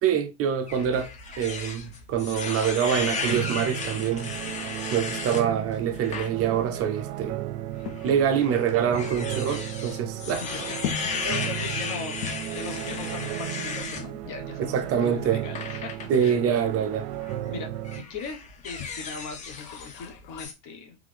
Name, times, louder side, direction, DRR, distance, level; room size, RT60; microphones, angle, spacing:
voice 1, 0.0-4.3 4.9-7.4 8.0-10.4 14.6-15.4 16.1-17.1, right 8 dB, 30° right, 0.5 m, -25 dB
sound 1, 0.7-20.4, left 6 dB, 80° left, 1.1 m, -44 dB
sound 2, 0.7-5.4 5.9-6.3 6.7-6.9 7.9-14.1 15.5-16.2 17.1-17.4 17.8-20.1 20.4-20.5, left 5 dB, 15° left, 0.3 m, -35 dB
sound 3, 3.0-18.0, right 14 dB, 75° right, 0.7 m, -35 dB
voice 2, 10.2-10.6 11.0-15.9 16.2-16.4 17.5-21.0, left 5 dB, 40° left, 1.1 m, -39 dB
3.7 x 3.4 x 3.3 m
supercardioid pair, 135°, 49 cm